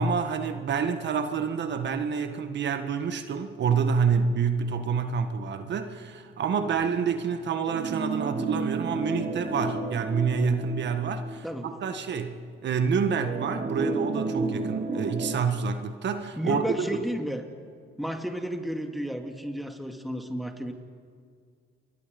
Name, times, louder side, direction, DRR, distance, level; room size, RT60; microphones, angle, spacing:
voice 1, 0.0-17.0, right 6 dB, 65° right, 8 dB, 1.7 m, -28 dB
sound 1, 7.7-12.0 12.4-12.5 13.2-15.3, right 2 dB, 40° right, 2.5 m, -32 dB
voice 2, 16.4-17.4 18.0-20.7, equal, ahead, 4 dB, 2.5 m, -32 dB
29.0 x 23.0 x 5.4 m, 2.1 s
cardioid pair, 90°, 20 cm